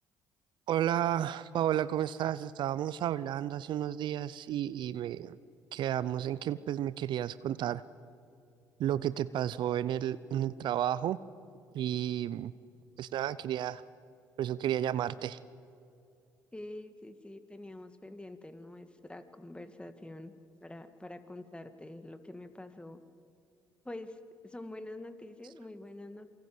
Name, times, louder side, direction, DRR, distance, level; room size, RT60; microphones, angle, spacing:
voice 1, 0.7-5.4 5.7-7.8 8.8-11.2 11.7-12.5 13.0-13.8 14.4-15.4, right 11 dB, 60° right, 17 dB, 0.7 m, -32 dB
voice 2, 16.5-20.3 20.6-23.0 23.8-26.3, left 1 dB, 10° left, 10 dB, 2.2 m, -46 dB
27.5 x 24.5 x 7.9 m, 2.5 s
hypercardioid pair, 50°, 9 cm